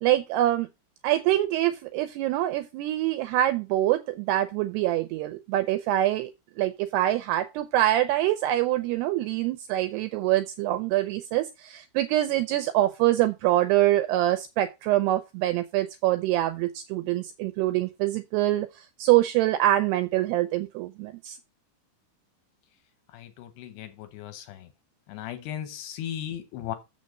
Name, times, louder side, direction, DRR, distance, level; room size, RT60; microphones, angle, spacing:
voice 1, 0.0-0.7 1.0-6.3 6.6-21.4, right 14 dB, 85° right, 2.4 m, -25 dB
voice 2, 23.1-24.7 25.1-26.8, left 11 dB, 75° left, 2.7 m, -37 dB
7.1 x 6.4 x 5.2 m
omnidirectional pair, 5.3 m